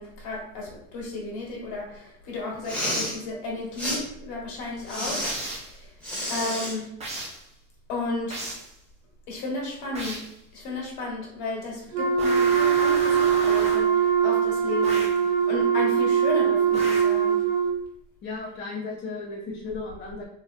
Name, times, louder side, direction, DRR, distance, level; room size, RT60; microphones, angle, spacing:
voice 1, 0.0-5.2 5.7-5.9 6.3-6.9 7.9-8.4 9.3-10.2 10.5-15.1 15.5-17.4, left 3 dB, 65° left, -2 dB, 1.5 m, -33 dB
Respiratory sounds, 2.5-3.2 3.8-4.0 4.9-5.3 6.0-6.8, equal, ahead, 1.0 m, -30 dB
sound 1, 5.2-5.8 7.0-7.5 8.3-8.7 10.0-10.4 12.2-13.9 14.8-15.3 16.7-17.2, right 2 dB, 15° right, 0.7 m, -35 dB
Wind instrument woodwind instrument, 11.9-17.7, right 7 dB, 70° right, 0.8 m, -22 dB
voice 2, 18.2-20.2, left 3 dB, 30° left, -4 dB, 0.7 m, -35 dB
2.9 x 2.9 x 2.4 m, 0.73 s
supercardioid pair, 110°, 42 cm